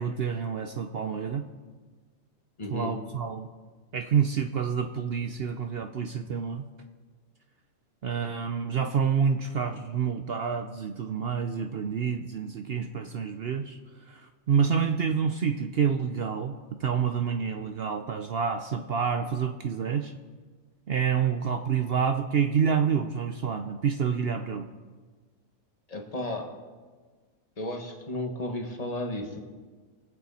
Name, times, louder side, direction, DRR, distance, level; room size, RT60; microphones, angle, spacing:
voice 1, 0.0-1.4 2.7-3.5 3.9-6.6 8.0-13.8 14.1-14.2 14.5-20.1 20.9-24.7, right 7 dB, 55° right, 6 dB, 0.7 m, -28 dB
voice 2, 2.6-3.0 25.9-26.5 27.6-29.4, left 1 dB, 30° left, 3 dB, 1.4 m, -33 dB
24.0 x 8.6 x 4.2 m, 1.4 s
omnidirectional pair, 1.4 m